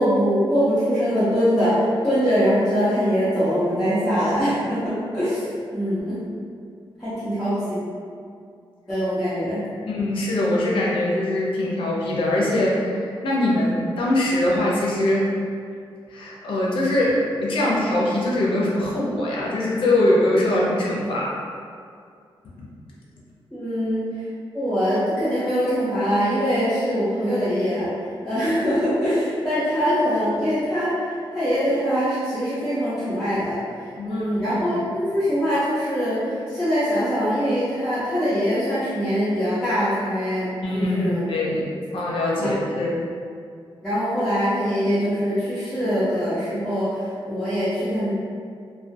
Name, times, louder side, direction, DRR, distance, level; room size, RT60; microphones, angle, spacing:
voice 1, 0.0-5.5 5.7-6.2 7.0-7.8 8.9-9.6 23.5-24.1 24.5-27.9 28.2-31.1 31.3-33.6 34.0-41.2 42.4-42.5 43.8-48.1, equal, ahead, -15 dB, 0.5 m, -23 dB
voice 2, 9.9-15.3 16.1-21.3 34.0-34.4 40.6-41.7 41.9-43.0, left 1 dB, 70° left, -5 dB, 0.5 m, -22 dB
2.3 x 2.2 x 2.5 m, 2.3 s
wide cardioid pair, 180°, 9 cm